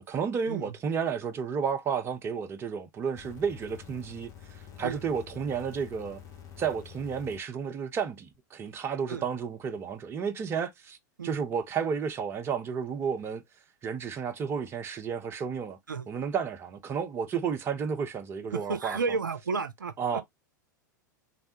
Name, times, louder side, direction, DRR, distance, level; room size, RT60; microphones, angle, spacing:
voice 1, 0.0-6.2 6.6-11.0 11.2-13.4 13.8-15.8 16.1-19.0 20.0-20.2, right 6 dB, 25° right, 0.6 m, -32 dB
sound 1, 3.2-7.4 8.3-8.4, left 9 dB, 30° left, 1.0 m, -48 dB
voice 2, 18.5-20.2, right 4 dB, 80° right, 0.4 m, -32 dB
3.2 x 2.1 x 2.8 m
figure-of-eight pair, 90°, 10 cm